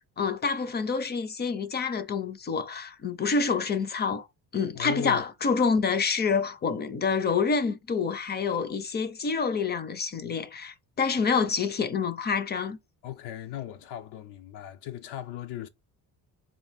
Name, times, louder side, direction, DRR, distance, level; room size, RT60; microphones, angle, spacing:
voice 1, 0.0-4.3 4.5-12.8, left 5 dB, 25° left, 0.4 m, -27 dB
voice 2, 4.7-5.2 13.0-15.7, left 12 dB, 90° left, 0.6 m, -37 dB
4.1 x 2.4 x 3.4 m
cardioid pair, 125°, 39 cm